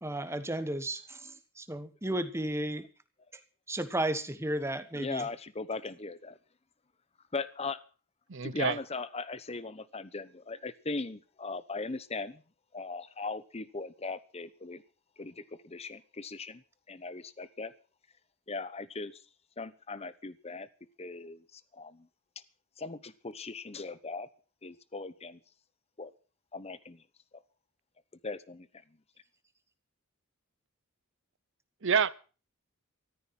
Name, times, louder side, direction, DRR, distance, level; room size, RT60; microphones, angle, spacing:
voice 1, 0.0-2.9 3.7-5.3, right 1 dB, 10° right, 1.3 m, -33 dB
voice 2, 4.9-6.4 7.3-7.8 8.4-12.4 12.7-14.8 15.2-16.6 16.9-17.7 18.5-19.2 19.6-20.7 21.0-22.1 22.8-24.3 24.6-25.4 26.0-26.1 26.5-27.0 28.2-28.7, left 3 dB, 30° left, 0.9 m, -39 dB
voice 3, 8.3-8.8 31.8-32.2, right 6 dB, 60° right, 0.8 m, -28 dB
14.0 x 13.5 x 5.9 m
head